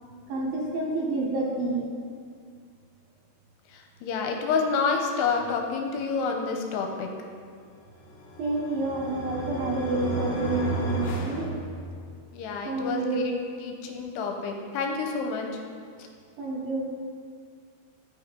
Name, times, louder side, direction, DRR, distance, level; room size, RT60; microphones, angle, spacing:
voice 1, 0.3-1.9 8.4-11.5 12.6-13.3 16.4-16.8, right 3 dB, 70° right, -2 dB, 2.4 m, -29 dB
voice 2, 3.7-7.1 12.3-13.4 13.6-15.6, left 5 dB, 85° left, 2 dB, 2.8 m, -29 dB
sound 1, 7.9-12.2, equal, 65° left, 2.2 m, -33 dB
13.5 x 5.7 x 3.8 m, 2.1 s
omnidirectional pair, 4.8 m